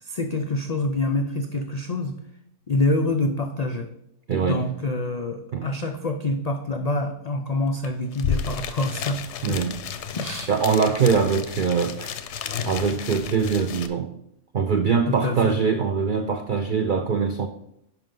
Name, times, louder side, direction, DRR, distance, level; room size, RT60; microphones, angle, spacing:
voice 1, 0.0-2.2 2.7-3.9 4.4-9.2 9.5-9.6 10.1-10.5 15.1-15.6, left 2 dB, 85° left, 4 dB, 0.3 m, -26 dB
voice 2, 4.3-4.7 5.5-5.7 9.4-9.8 10.5-12.1 12.6-14.2 14.5-17.5, right 5 dB, 75° right, 7 dB, 0.4 m, -23 dB
sound 1, 7.8-7.9 8.1-13.9, left 7 dB, 65° left, 0.8 m, -32 dB
10.5 x 5.1 x 3.8 m, 0.77 s
omnidirectional pair, 1.5 m